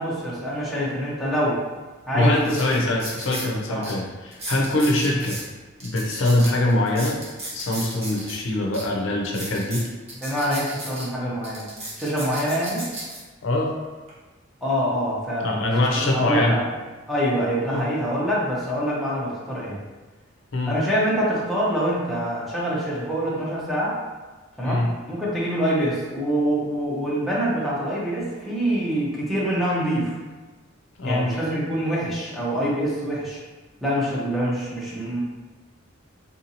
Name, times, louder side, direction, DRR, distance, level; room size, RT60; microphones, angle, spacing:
voice 1, 0.0-1.6 2.1-2.6 3.7-3.9 10.2-11.7 12.0-12.9 14.6-15.6 16.0-16.6 17.1-19.8 20.7-24.0 24.6-30.2 31.0-33.4 33.8-35.2, equal, ahead, -7 dB, 0.7 m, -25 dB
sound 1, 1.7-1.8 2.4-3.5 3.8-3.9 4.3-5.4 5.8-8.4 8.7-8.8 9.2-11.0 11.4-13.2 13.8-14.1, right 1 dB, 30° right, 0.9 m, -35 dB
voice 2, 2.1-5.4 5.8-7.2 7.5-9.9 13.4-13.7 15.4-16.6 17.7-17.8 20.5-20.8 24.6-24.9 31.0-31.3, left 1 dB, 65° left, -1 dB, 0.5 m, -23 dB
3.6 x 2.7 x 2.8 m, 1.3 s
head